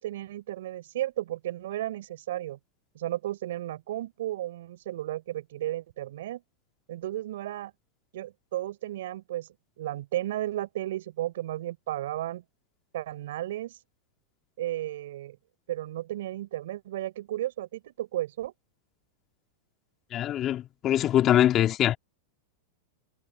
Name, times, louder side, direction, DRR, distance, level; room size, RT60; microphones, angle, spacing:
voice 1, 0.0-2.6 2.9-6.4 6.9-7.7 8.1-9.5 9.8-12.4 12.9-13.8 14.6-15.4 15.7-18.5, right 14 dB, 75° right, 7.0 m, -34 dB
voice 2, 20.1-22.0, left 12 dB, 35° left, 3.2 m, -23 dB
hypercardioid pair, 115°, 0 cm